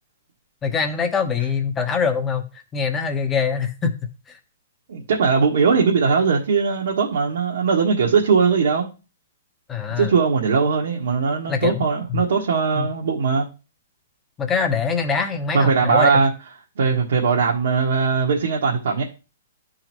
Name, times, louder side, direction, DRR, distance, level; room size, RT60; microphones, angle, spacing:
voice 1, 0.6-3.9 4.3-4.4 9.7-10.1 11.5-12.2 12.8-12.9 14.4-16.2, left 6 dB, 15° left, 6 dB, 1.0 m, -24 dB
voice 2, 4.9-8.9 10.0-13.5 15.5-16.3 16.8-19.0, right 5 dB, 75° right, -2 dB, 1.4 m, -19 dB
10.5 x 3.9 x 3.0 m, 0.31 s
hypercardioid pair, 145°, 0 cm